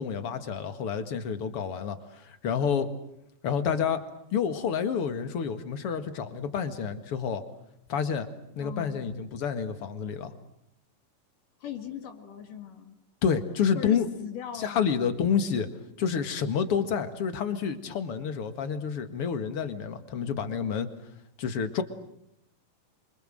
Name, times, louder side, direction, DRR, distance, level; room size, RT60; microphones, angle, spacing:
voice 1, 0.0-2.9 3.4-4.0 4.3-7.4 7.9-8.3 8.6-10.3 13.2-14.1 14.5-15.7 16.0-20.9 21.4-21.8, left 7 dB, 50° left, 10 dB, 2.4 m, -29 dB
voice 2, 8.6-9.0 11.6-13.0 13.7-14.9, left 9 dB, 75° left, 6 dB, 3.6 m, -40 dB
27.0 x 25.0 x 7.8 m, 0.77 s
omnidirectional pair, 3.9 m